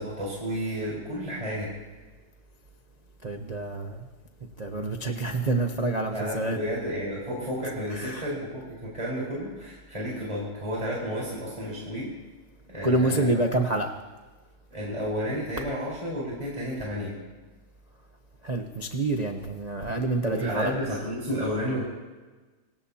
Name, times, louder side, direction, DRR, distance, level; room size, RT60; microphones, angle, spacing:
voice 1, 0.0-1.7 6.1-12.1 12.7-13.4 14.7-17.1 20.3-21.9, equal, 15° right, -6 dB, 4.5 m, -31 dB
voice 2, 3.2-4.0 4.6-6.6 7.9-8.2 12.8-13.9 18.4-20.7, right 2 dB, 60° right, 3 dB, 0.4 m, -27 dB
26.5 x 18.5 x 2.9 m, 1.3 s
omnidirectional pair, 2.4 m